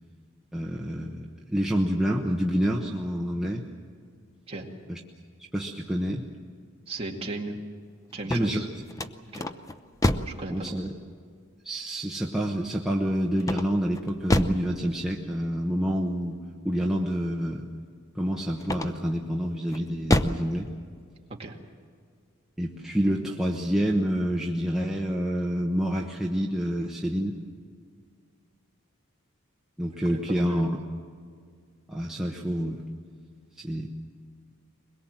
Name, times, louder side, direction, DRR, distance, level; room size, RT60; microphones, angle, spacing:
voice 1, 0.5-3.6 4.9-5.0 5.4-6.3 8.2-8.7 10.5-10.9 11.6-17.7 18.1-20.7 22.6-27.4 29.8-30.8 31.9-32.8 33.6-33.9, equal, ahead, -2 dB, 1.0 m, -28 dB
voice 2, 6.9-7.6 8.1-8.7 9.3-9.4 10.3-10.7 21.4-21.6 30.1-30.4, right 2 dB, 30° right, 0 dB, 2.2 m, -36 dB
sound 1, 8.1-10.5 13.4-14.7 18.6-19.2 19.7-20.5, left 1 dB, 15° left, 0.6 m, -27 dB
22.5 x 21.5 x 7.6 m, 2.1 s
head